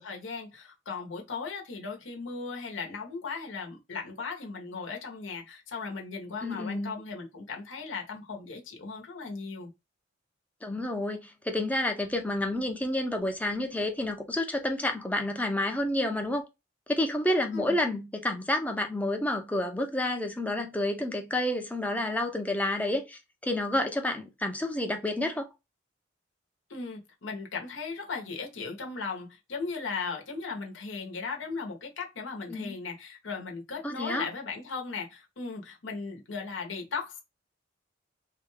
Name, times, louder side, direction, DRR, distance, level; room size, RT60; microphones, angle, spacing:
voice 1, 0.0-9.7 17.5-17.8 26.7-37.2, left 4 dB, 75° left, 1.0 m, -37 dB
voice 2, 6.4-6.9 10.6-16.5 16.9-25.5 32.5-32.8 33.8-34.3, left 1 dB, 10° left, 0.6 m, -29 dB
3.4 x 2.3 x 3.1 m
head